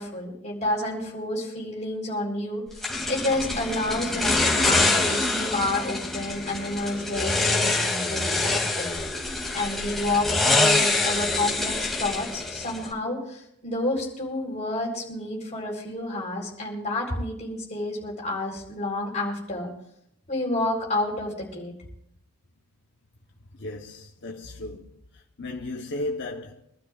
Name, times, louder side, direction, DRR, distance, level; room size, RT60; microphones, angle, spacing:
voice 1, 0.0-2.6 3.1-9.0 9.5-19.7 20.3-21.7, left 2 dB, 30° left, 4.3 m, -29 dB
sound 1, 2.8-12.9, left 2 dB, ahead, 2.6 m, -25 dB
voice 2, 23.4-26.6, left 2 dB, 55° left, 1.0 m, -35 dB
25.0 x 12.5 x 2.5 m
head